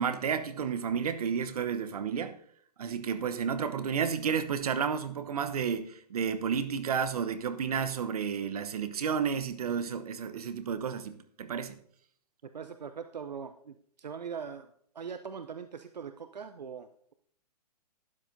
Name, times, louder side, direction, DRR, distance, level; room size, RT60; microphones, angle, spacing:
voice 1, 0.0-2.4 2.8-11.8, right 7 dB, 65° right, 1.0 m, -31 dB
voice 2, 12.4-14.7 14.9-17.1, right 6 dB, 85° right, 0.6 m, -41 dB
12.5 x 9.9 x 2.7 m
hypercardioid pair, 130°, 21 cm